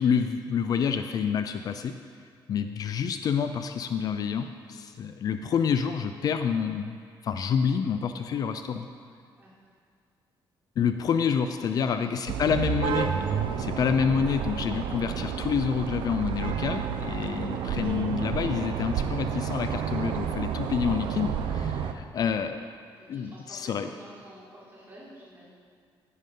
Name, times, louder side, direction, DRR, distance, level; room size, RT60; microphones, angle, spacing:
voice 1, 0.0-1.9 2.5-7.0 7.2-8.9 10.8-13.1 13.6-22.6 23.1-23.9, left 7 dB, 50° left, 8 dB, 0.4 m, -28 dB
voice 2, 11.8-12.5 23.0-25.5, right 1 dB, 25° right, -7 dB, 3.3 m, -50 dB
sound 1, 12.3-21.9, right 7 dB, 85° right, 0.7 m, -30 dB
14.5 x 9.5 x 3.8 m, 2.1 s
cardioid pair, 165°, 8 cm